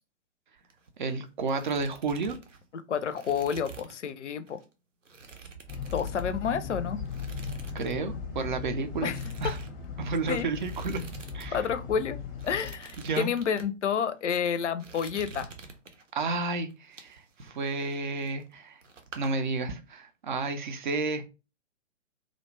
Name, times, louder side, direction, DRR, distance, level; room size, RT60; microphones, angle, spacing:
sound 1, 0.6-1.1 1.4-4.1 4.5-4.6 5.1-6.6 7.1-8.0 8.2-8.5 9.0-11.5 11.8-11.9 12.3-13.7 14.2-14.5 14.8-16.2 16.7-18.6 18.8-19.3, right 4 dB, 80° right, 0.7 m, -47 dB
voice 1, 1.0-2.4 7.7-9.1 9.4-9.6 10.0-11.0 11.3-11.7 13.0-13.3 16.1-18.8 19.2-21.3, right 3 dB, 40° right, 0.4 m, -31 dB
voice 2, 2.9-4.6 5.9-7.0 9.0-9.2 10.3-10.5 11.5-12.2 12.4-15.5, left 7 dB, 70° left, 0.5 m, -29 dB
sound 2, 5.7-12.7, left 6 dB, 20° left, 0.6 m, -38 dB
2.5 x 2.1 x 3.1 m
figure-of-eight pair, 115°, 37 cm